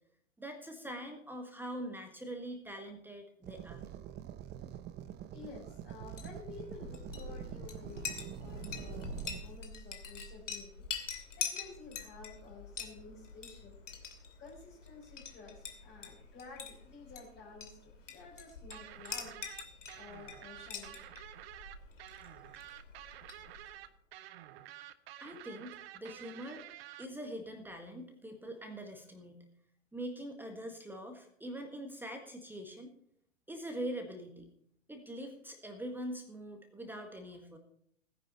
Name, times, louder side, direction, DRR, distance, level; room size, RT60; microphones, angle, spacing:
voice 1, 0.4-3.9 25.2-26.7 27.0-29.5 29.9-32.9 33.5-34.5 34.9-37.6, right 1 dB, 5° right, 4 dB, 1.6 m, -43 dB
sound 1, 3.4-9.4, right 10 dB, 25° right, 1.0 m, -46 dB
voice 2, 5.3-10.9 11.4-13.8 14.4-19.4 20.0-21.0, left 4 dB, 25° left, -4 dB, 4.3 m, -52 dB
Chink clink, 6.0-23.8, left 5 dB, 75° left, 2.7 m, -45 dB
sound 2, 18.7-27.1, right 13 dB, 50° right, 1.0 m, -50 dB
17.0 x 10.5 x 4.2 m, 0.69 s
figure-of-eight pair, 105°, 38 cm